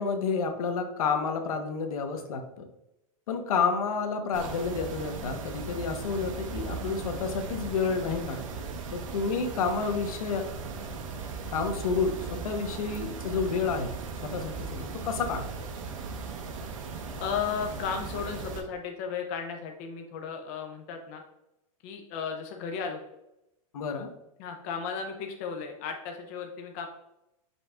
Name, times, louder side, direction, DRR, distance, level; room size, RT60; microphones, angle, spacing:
voice 1, 0.0-2.7 3.3-8.6 8.9-10.5 11.5-13.9 14.2-15.5 23.7-24.1, left 5 dB, 80° left, 6 dB, 0.8 m, -30 dB
sound 1, 4.3-18.6, right 4 dB, 65° right, 0.8 m, -38 dB
voice 2, 17.2-21.2 21.8-23.0 24.4-26.9, left 6 dB, 25° left, 4 dB, 0.4 m, -35 dB
5.3 x 3.9 x 2.3 m, 0.88 s
supercardioid pair, 175°, 18 cm